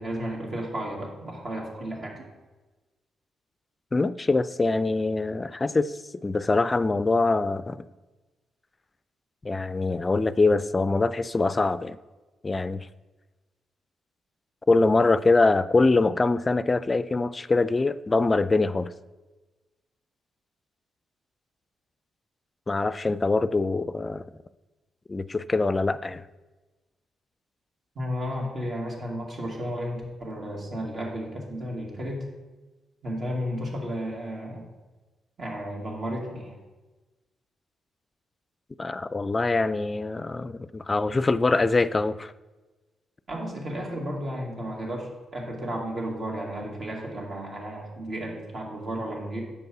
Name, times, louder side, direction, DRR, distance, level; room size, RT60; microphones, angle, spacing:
voice 1, 0.0-2.3 28.0-32.3 33.0-34.6 35.4-36.5 43.3-49.4, equal, 55° right, 2.3 m, -33 dB
voice 2, 3.9-6.0 6.2-7.9 9.4-12.0 12.4-12.9 14.7-18.9 22.7-24.2 25.1-26.2 38.8-42.3, left 3 dB, 30° left, 0.4 m, -24 dB
6.6 x 5.3 x 5.9 m
hypercardioid pair, 40°, 0 cm